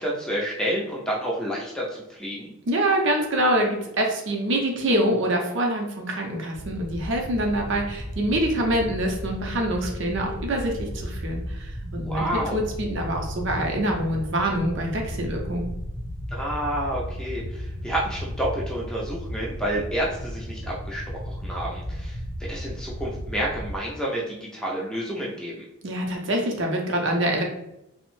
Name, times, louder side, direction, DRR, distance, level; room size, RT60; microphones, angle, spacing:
voice 1, 0.0-2.5 12.0-12.6 16.3-25.6, right 1 dB, 5° left, -4 dB, 0.4 m, -29 dB
voice 2, 2.7-15.7 25.8-27.4, right 1 dB, 55° right, 1 dB, 0.5 m, -25 dB
sound 1, 6.5-23.8, equal, 60° left, 0.6 m, -34 dB
2.8 x 2.0 x 3.0 m, 0.87 s
head